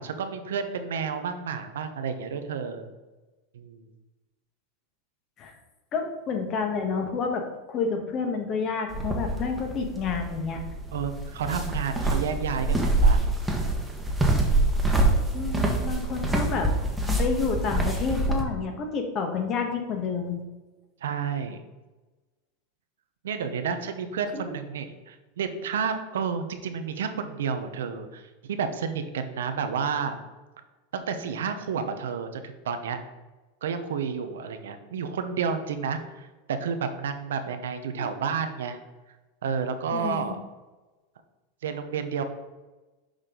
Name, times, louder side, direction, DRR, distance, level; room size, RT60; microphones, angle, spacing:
voice 1, 0.0-2.9 3.5-3.9 10.9-13.2 21.0-21.6 23.2-30.2 30.9-33.0 33.6-38.8 39.4-40.4 41.6-42.2, right 6 dB, 85° right, 8 dB, 0.7 m, -31 dB
voice 2, 5.9-10.6 15.3-16.7 17.2-20.4 24.3-24.4 38.0-38.1 39.9-40.4, left 5 dB, 40° left, 4 dB, 1.3 m, -29 dB
sound 1, 8.9-18.4, right 2 dB, 5° right, 1.2 m, -25 dB
6.4 x 5.1 x 3.7 m, 1.2 s
hypercardioid pair, 115°, 0 cm